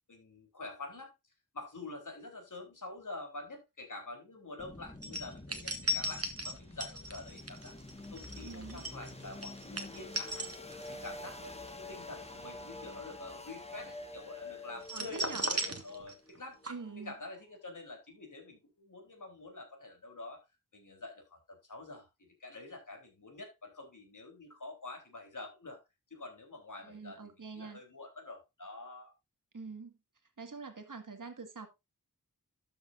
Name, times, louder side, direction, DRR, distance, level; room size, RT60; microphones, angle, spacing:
voice 1, 0.1-1.1 1.5-7.7 8.1-10.5 10.9-16.6 17.0-20.5 20.7-25.8 26.1-29.1, left 2 dB, 60° left, 3.8 m, -47 dB
sound 1, 4.6-17.4, left 2 dB, 20° left, 1.6 m, -48 dB
sound 2, 5.0-11.1 11.4-11.7 14.8-16.4 16.6-16.7, right 1 dB, 45° right, 1.7 m, -37 dB
voice 2, 8.4-8.9 14.9-15.5 16.7-17.1 26.8-27.8 29.5-29.9 30.4-31.7, right 4 dB, 60° right, 1.9 m, -45 dB
12.5 x 7.1 x 2.6 m
wide cardioid pair, 70°, 35 cm